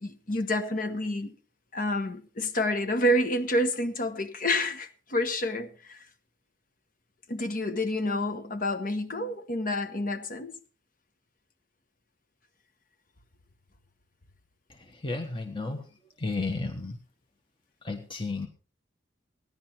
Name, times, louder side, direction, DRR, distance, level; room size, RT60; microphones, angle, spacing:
voice 1, 0.0-1.4 1.7-6.0 7.3-10.5, left 1 dB, 50° left, 1.1 m, -28 dB
voice 2, 15.0-15.8 16.2-17.0 17.8-18.5, left 3 dB, 30° left, 1.3 m, -32 dB
16.0 x 11.0 x 4.4 m
head